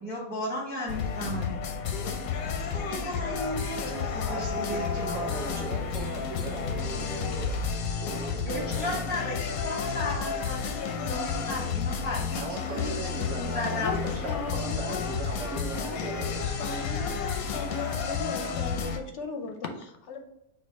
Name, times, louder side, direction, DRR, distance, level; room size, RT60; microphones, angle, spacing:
voice 1, 0.0-1.6 2.6-5.2 8.5-13.0 13.3-14.0, left 1 dB, 10° right, -3 dB, 0.8 m, -35 dB
sound 1, 0.9-19.0, left 6 dB, 85° left, 1.1 m, -31 dB
voice 2, 4.3-7.5 7.9-9.0 12.4-16.4, right 3 dB, 65° right, -2 dB, 1.3 m, -38 dB
voice 3, 13.7-14.0 14.3-16.0 16.6-20.2, left 4 dB, 65° left, 5 dB, 0.8 m, -37 dB
4.5 x 2.4 x 4.5 m, 0.81 s
omnidirectional pair, 1.5 m